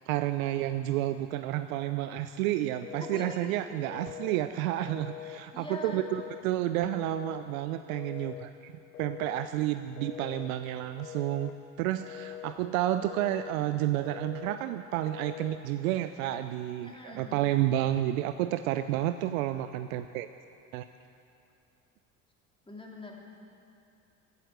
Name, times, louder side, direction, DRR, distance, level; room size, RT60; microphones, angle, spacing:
voice 1, 0.0-8.7 9.0-11.5 11.8-20.3 20.7-20.8, right 13 dB, 70° right, 10 dB, 0.6 m, -30 dB
Telephone, 2.8-3.4 3.8-4.4 4.9-5.4 5.9-6.5 6.9-7.5 7.9-8.5 8.9-9.5 10.0-10.5 11.0-11.6 12.0-12.6 13.0-13.6 14.0-14.6 15.0-15.6, left 12 dB, 85° left, 0.8 m, -43 dB
voice 2, 3.0-3.5 5.5-6.0 16.8-17.5 22.7-23.2, left 1 dB, 10° left, -1 dB, 3.0 m, -42 dB
15.5 x 8.7 x 8.0 m, 2.6 s
hypercardioid pair, 65°, 43 cm